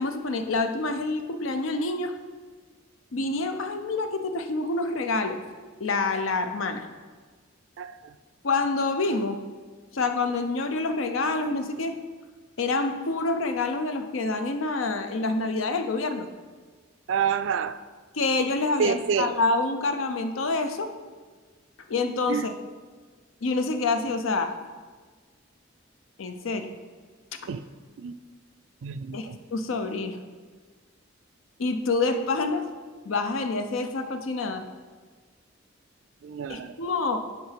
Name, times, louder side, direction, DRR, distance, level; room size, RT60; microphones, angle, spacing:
voice 1, 0.0-2.2 3.1-5.4 5.8-6.9 8.4-9.4 9.9-12.0 12.6-16.3 18.1-20.9 21.9-22.5 23.4-24.6 26.2-26.7 29.1-30.2 31.6-32.7 33.0-34.6 36.5-37.3, left 3 dB, 80° left, 8 dB, 0.6 m, -27 dB
voice 2, 7.8-8.1 17.1-17.8 18.8-19.3 22.3-22.5 27.5-27.6 28.0-28.1 28.8-29.4 36.2-36.8, right 7 dB, 70° right, 12 dB, 0.3 m, -28 dB
5.8 x 4.7 x 5.8 m, 1.4 s
head